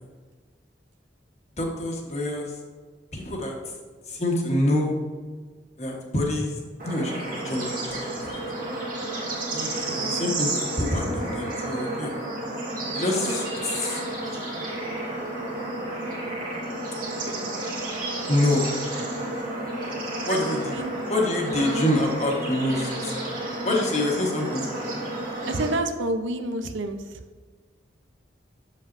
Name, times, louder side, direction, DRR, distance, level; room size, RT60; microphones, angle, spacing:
voice 1, 1.6-2.6 3.1-3.7 4.1-4.9 5.8-6.6 6.8-8.4 9.5-12.1 12.9-14.4 18.3-18.7 20.2-20.8 21.1-23.1 23.6-24.9, left 1 dB, 35° left, 0 dB, 1.2 m, -26 dB
Bird / Insect / Frog, 6.8-25.7, right 2 dB, 45° right, 2.1 m, -31 dB
voice 2, 20.7-21.0 25.5-27.2, right 2 dB, 85° right, 8 dB, 0.6 m, -30 dB
7.5 x 7.3 x 2.6 m, 1.5 s
head